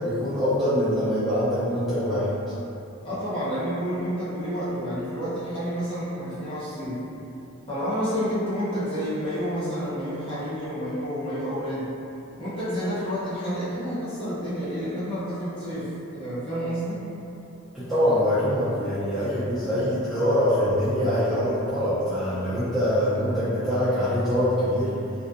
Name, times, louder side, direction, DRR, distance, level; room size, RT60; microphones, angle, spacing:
voice 1, 0.0-2.5 17.7-24.9, equal, ahead, -16 dB, 0.4 m, -24 dB
voice 2, 3.0-7.0 7.7-11.9 12.4-17.0, equal, 25° left, -11 dB, 0.8 m, -29 dB
2.6 x 2.1 x 2.4 m, 2.8 s
head